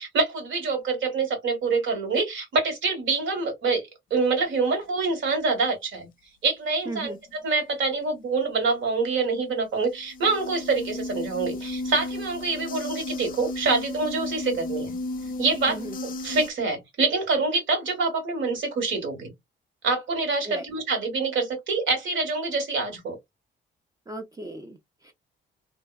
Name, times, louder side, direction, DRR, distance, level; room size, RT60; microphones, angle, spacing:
voice 1, 0.0-3.8 4.1-6.1 6.4-15.0 15.4-19.3 19.8-23.1, right 4 dB, 75° right, 1.6 m, -26 dB
voice 2, 6.9-7.2 15.7-16.0 20.4-20.6 24.1-25.1, right 2 dB, 20° right, 0.5 m, -36 dB
sound 1, 9.8-16.5, left 2 dB, 45° left, 0.5 m, -34 dB
2.7 x 2.1 x 2.3 m
cardioid pair, 90°, 20 cm